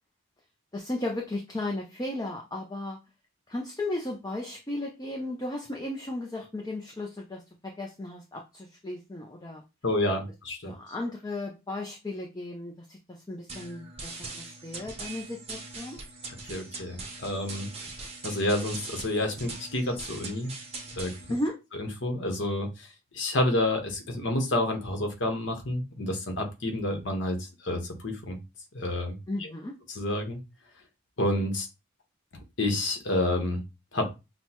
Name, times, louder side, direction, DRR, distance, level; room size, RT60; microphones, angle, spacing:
voice 1, 0.7-3.0 3.5-9.6 10.6-16.0 21.3-21.6 29.3-29.7, left 1 dB, 20° left, 0 dB, 0.5 m, -35 dB
voice 2, 9.8-10.7 16.4-17.7 18.2-20.5 20.9-21.1 21.8-22.9 23.1-28.4 28.7-29.5 29.9-30.4 31.2-31.7 32.6-33.6 33.9-34.1, left 1 dB, 55° left, 3 dB, 1.1 m, -29 dB
sound 1, 13.5-21.5, right 3 dB, 30° right, 0.7 m, -41 dB
6.0 x 2.2 x 2.9 m, 0.25 s
head